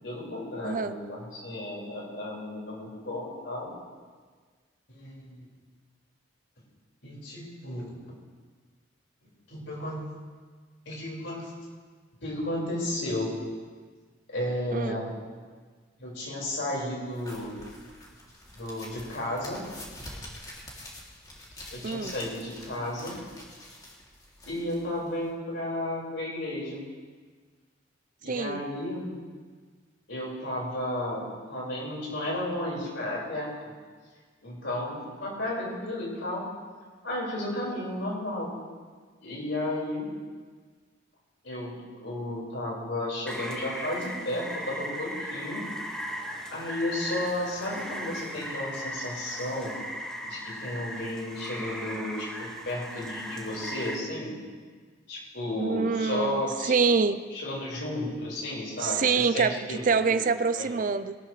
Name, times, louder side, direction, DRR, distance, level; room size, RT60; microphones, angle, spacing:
voice 1, 0.0-3.7 4.9-5.4 7.0-8.0 9.5-10.0 10.8-11.5 12.2-13.3 14.3-15.1 16.0-17.5 18.5-19.6 21.7-23.1 24.4-26.8 28.2-29.1 30.1-33.5 34.4-36.4 37.0-38.5 39.2-40.1 41.4-45.6 46.5-49.7 50.2-54.4 55.1-56.7 57.3-60.2 60.5-60.7, left 1 dB, 70° left, -4 dB, 5.0 m, -33 dB
voice 2, 0.6-1.0 14.7-15.0 21.8-22.1 28.3-28.6 55.6-57.2 58.8-61.1, right 5 dB, 45° right, 12 dB, 0.5 m, -26 dB
sound 1, 17.1-25.3, left 1 dB, 20° left, 2.7 m, -46 dB
Rain, 43.3-53.9, equal, 5° left, 1.6 m, -37 dB
22.0 x 12.5 x 3.2 m, 1.5 s
head